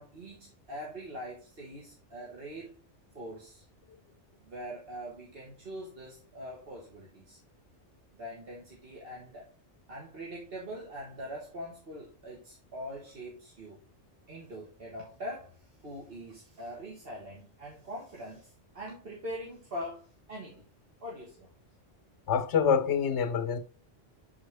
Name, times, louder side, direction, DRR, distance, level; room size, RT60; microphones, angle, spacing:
voice 1, 0.0-2.8 3.2-3.7 4.4-7.4 8.2-9.5 9.9-13.8 14.3-20.6 21.0-21.5, equal, 55° right, 1.6 m, -43 dB
voice 2, 22.3-23.6, left 7 dB, 75° left, 1.1 m, -26 dB
7.4 x 4.2 x 3.3 m
omnidirectional pair, 1.2 m